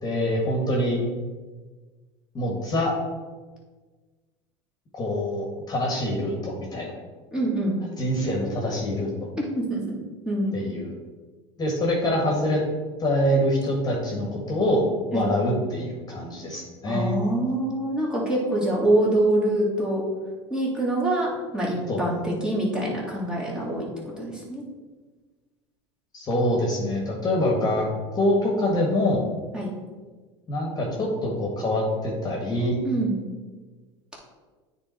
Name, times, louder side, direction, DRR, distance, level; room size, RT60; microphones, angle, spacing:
voice 1, 0.0-1.0 2.3-2.9 4.9-6.9 8.0-9.3 10.5-10.9 11.6-12.6 13.0-14.8 15.1-17.2 21.9-22.0 26.1-29.2 30.5-32.8, left 1 dB, 25° left, -1 dB, 1.7 m, -25 dB
voice 2, 7.3-7.8 9.4-10.0 10.2-10.6 15.1-15.3 16.8-20.0 20.5-23.9 24.2-24.6 29.5-29.7 32.8-33.3, right 1 dB, 5° right, -5 dB, 2.2 m, -25 dB
8.9 x 3.6 x 4.5 m, 1.4 s
supercardioid pair, 105°, 15 cm